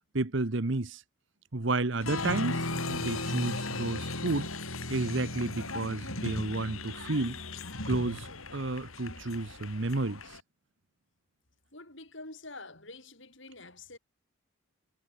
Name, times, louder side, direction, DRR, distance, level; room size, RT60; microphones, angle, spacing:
voice 1, 0.1-1.0 1.5-4.5 4.9-7.4 7.9-10.2, right 2 dB, 55° right, 1.1 m, -31 dB
Applause, 2.0-10.4, left 2 dB, 75° left, 7.2 m, -36 dB
voice 2, 11.7-14.0, left 2 dB, 55° left, 7.8 m, -47 dB
head